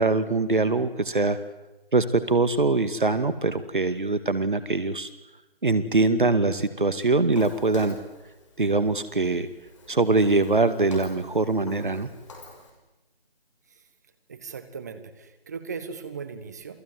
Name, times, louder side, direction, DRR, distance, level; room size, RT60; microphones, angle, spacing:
voice 1, 0.0-1.4 1.9-5.1 5.6-8.0 8.6-9.5 9.9-12.1, right 3 dB, 60° right, 13 dB, 2.0 m, -23 dB
Walk footsteps, 7.3-12.7, left 2 dB, 30° left, 6.0 m, -46 dB
voice 2, 14.3-16.8, right 5 dB, 20° right, 12 dB, 1.5 m, -38 dB
28.5 x 19.5 x 9.5 m, 1.0 s
figure-of-eight pair, 165°, 29 cm